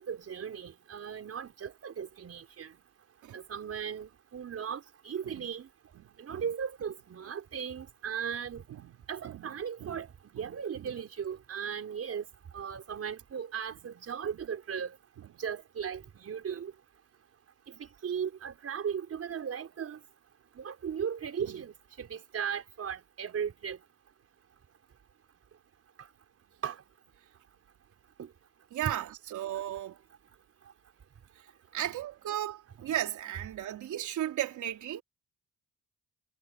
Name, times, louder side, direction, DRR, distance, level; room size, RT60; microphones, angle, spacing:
voice 1, 0.0-2.7 3.3-5.7 6.2-8.6 9.1-10.1 10.4-12.3 12.5-15.0 15.4-16.7 17.8-20.0 20.5-23.8 26.6-26.8 28.2-28.3 28.8-28.9, right 7 dB, 50° right, 5.1 m, -37 dB
voice 2, 6.0-6.5 8.7-8.9 9.2-9.5 9.8-10.0 10.4-11.0 21.5-21.6 28.7-30.0 31.7-35.0, right 12 dB, 75° right, 3.8 m, -36 dB
cardioid pair, 90°, 30 cm